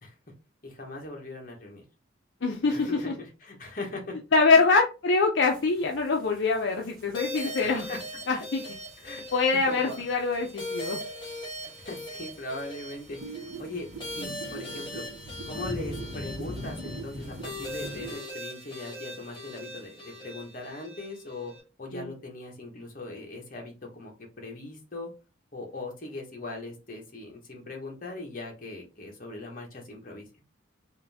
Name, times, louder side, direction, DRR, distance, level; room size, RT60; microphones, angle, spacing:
voice 1, 0.6-1.8 2.6-4.2 4.5-4.6 7.6-8.0 9.0-9.2 9.5-10.0 11.6-13.9 14.1-15.1 15.5-21.5 21.8-25.1 25.5-30.3, left 2 dB, 45° left, 1 dB, 1.0 m, -40 dB
voice 2, 2.4-3.1 4.3-7.9 8.3-8.7 9.3-11.0 21.9-22.1, left 4 dB, 65° left, 2 dB, 0.5 m, -24 dB
sound 1, 5.4-18.1, left 1 dB, 45° right, 1.0 m, -45 dB
sound 2, 7.1-21.6, left 1 dB, 25° left, 1.5 m, -40 dB
sound 3, 13.2-18.2, right 4 dB, 70° right, 0.5 m, -42 dB
3.7 x 2.6 x 3.4 m, 0.31 s
head